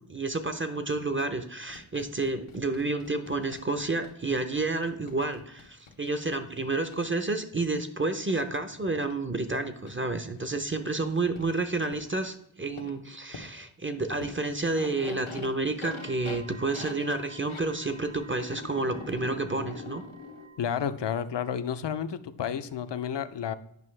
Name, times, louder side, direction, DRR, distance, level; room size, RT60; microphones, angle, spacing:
voice 1, 0.1-20.0, right 3 dB, 25° right, 8 dB, 0.6 m, -30 dB
sound 1, 1.7-6.1 6.9-7.0 8.3-8.4 9.0-9.1 9.9-10.0 11.4-11.5 11.9-12.0 12.8-12.9 13.3-13.5 14.2-14.3 14.6-17.6 18.4-20.5, left 4 dB, 90° left, 0.9 m, -43 dB
sound 2, 15.8-20.8, right 1 dB, 85° right, 1.7 m, -50 dB
voice 2, 20.6-23.6, left 8 dB, 60° left, 13 dB, 0.5 m, -31 dB
9.2 x 5.4 x 3.2 m, 0.72 s
wide cardioid pair, 55°, 47 cm